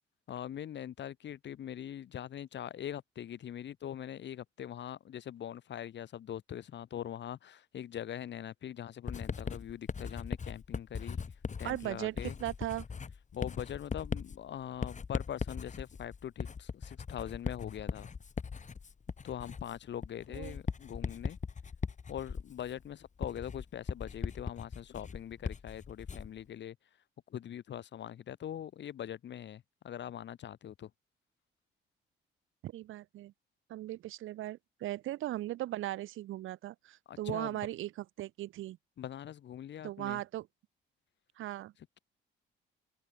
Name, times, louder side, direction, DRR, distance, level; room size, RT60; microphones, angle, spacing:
voice 1, 0.3-11.2 11.6-12.4 13.3-18.1 19.2-21.4 22.1-26.8 27.3-30.9 37.1-37.6 39.0-40.2, left 10 dB, 65° left, 2.8 m, -42 dB
Writing, 9.1-26.4, left 5 dB, 35° left, 3.4 m, -39 dB
voice 2, 11.6-12.9 20.3-20.6 32.6-33.3 33.7-38.8 39.8-40.5 41.4-41.7, right 14 dB, 85° right, 4.2 m, -38 dB
open air
cardioid pair, 90°, 20 cm